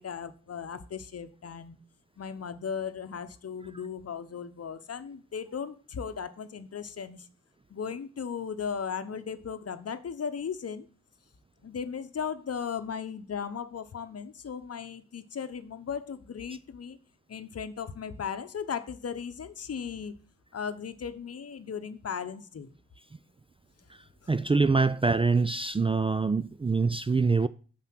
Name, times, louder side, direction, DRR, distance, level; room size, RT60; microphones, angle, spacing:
voice 1, 0.0-1.8 2.2-7.3 7.7-10.9 11.6-17.0 17.3-20.1 20.5-22.7 24.2-24.3, left 7 dB, 50° left, 0.9 m, -36 dB
voice 2, 24.3-27.5, right 4 dB, 20° right, 0.4 m, -24 dB
6.6 x 5.7 x 6.0 m
supercardioid pair, 40°, 31 cm